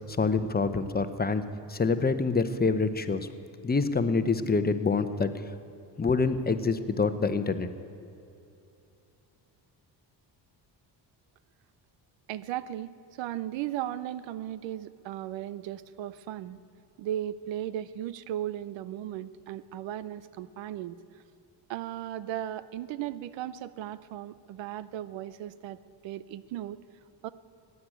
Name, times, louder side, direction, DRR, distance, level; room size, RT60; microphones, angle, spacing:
voice 1, 0.2-1.4 1.7-3.3 3.6-5.3 6.0-7.7, left 4 dB, 20° left, 10 dB, 1.0 m, -26 dB
voice 2, 12.3-12.9 13.2-16.6 17.0-21.0 21.7-25.8 26.0-26.8 27.2-27.3, right 12 dB, 90° right, 16 dB, 0.7 m, -36 dB
16.5 x 9.7 x 8.9 m, 2.7 s
cardioid pair, 90°, 43 cm